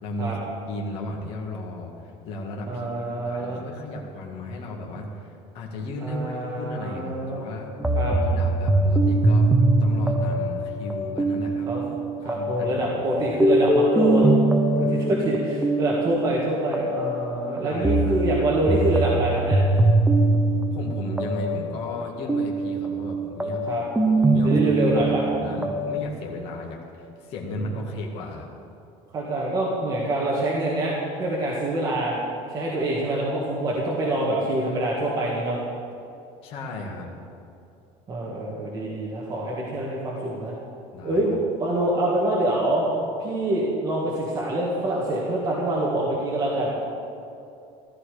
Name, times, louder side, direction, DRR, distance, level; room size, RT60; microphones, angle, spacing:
voice 1, 0.0-0.4 0.7-7.7 8.2-11.9 12.2-12.9 13.2-13.4 17.6-18.2 20.5-23.6 24.1-24.6 24.9-28.5 36.4-37.1 40.9-41.3, left 1 dB, 45° left, -1 dB, 2.0 m, -35 dB
voice 2, 2.7-3.6 6.0-7.4 8.0-8.2 11.7-11.8 12.2-14.3 14.8-19.6 23.6-23.8 24.3-25.3 27.5-27.7 29.1-32.2 32.5-35.6 38.1-40.5 41.0-42.9 43.2-46.7, right 1 dB, 25° right, -5 dB, 1.8 m, -25 dB
sound 1, 7.8-26.0, right 2 dB, 5° right, 0.7 m, -23 dB
14.5 x 14.0 x 5.0 m, 2.6 s
cardioid pair, 170°, 14 cm